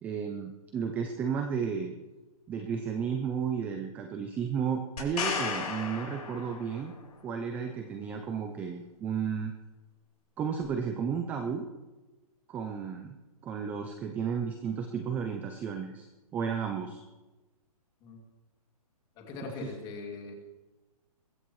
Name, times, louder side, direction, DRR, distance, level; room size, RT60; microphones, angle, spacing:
voice 1, 0.0-1.9 2.5-6.9 7.2-9.5 10.4-11.7 12.5-13.2 13.4-16.1 16.3-17.0 19.6-19.7, right 6 dB, 10° right, 5 dB, 0.4 m, -33 dB
sound 1, 5.0-7.0 10.6-10.7, left 5 dB, 75° left, 4.5 m, -34 dB
voice 2, 19.2-20.3, left 4 dB, 20° left, 1 dB, 2.6 m, -41 dB
21.5 x 15.0 x 3.1 m, 1.1 s
hypercardioid pair, 165°, 20 cm